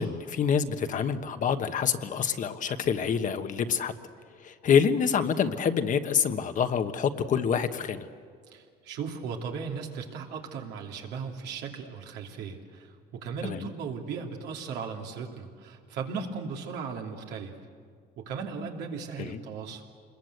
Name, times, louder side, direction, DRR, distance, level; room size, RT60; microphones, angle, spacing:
voice 1, 0.0-3.9 4.4-8.1 13.4-13.6 19.2-19.4, left 7 dB, 50° left, 9 dB, 1.3 m, -26 dB
voice 2, 8.5-17.5 18.2-19.8, right 5 dB, 85° right, 2 dB, 2.8 m, -37 dB
26.5 x 21.5 x 8.0 m, 2.1 s
cardioid pair, 110°, 17 cm